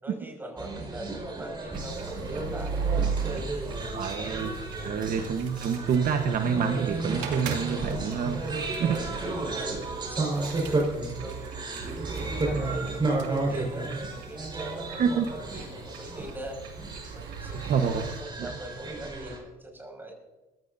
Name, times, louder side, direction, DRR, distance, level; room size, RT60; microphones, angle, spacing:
voice 1, 0.0-3.5 4.1-4.5 4.8-5.2 6.8-8.4 8.8-11.8 12.2-16.6 17.1-20.1, right 1 dB, 10° right, 1 dB, 5.9 m, -42 dB
sound 1, 0.6-19.4, right 2 dB, 25° right, 4.8 m, -33 dB
sound 2, 1.7-18.2, right 5 dB, 85° right, 2.5 m, -38 dB
voice 2, 3.9-4.5 4.8-8.4 8.8-9.0 14.9-15.3 17.7-18.1 18.4-18.5, right 7 dB, 55° right, 5 dB, 1.2 m, -27 dB
21.5 x 16.0 x 2.7 m, 1.1 s
cardioid pair, 110°, 17 cm